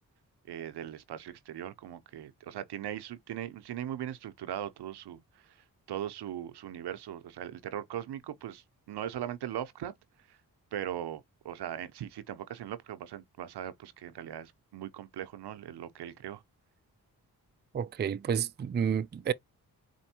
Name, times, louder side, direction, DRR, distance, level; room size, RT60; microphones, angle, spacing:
voice 1, 0.5-9.9 10.3-10.4 10.7-16.4, right 11 dB, 80° right, 0.7 m, -39 dB
voice 2, 17.7-19.3, right 7 dB, 25° right, 0.4 m, -30 dB
4.4 x 2.6 x 2.7 m
supercardioid pair, 40°, 39 cm